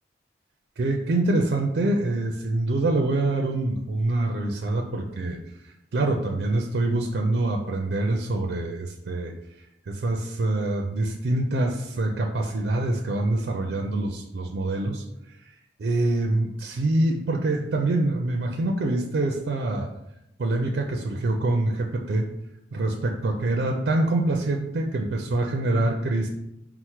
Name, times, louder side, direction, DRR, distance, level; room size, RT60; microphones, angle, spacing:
voice 1, 0.8-9.3 9.8-15.0 15.4-19.9 20.4-22.3 22.7-26.3, right 2 dB, 65° right, 2 dB, 0.4 m, -25 dB
4.4 x 2.0 x 4.4 m, 0.83 s
head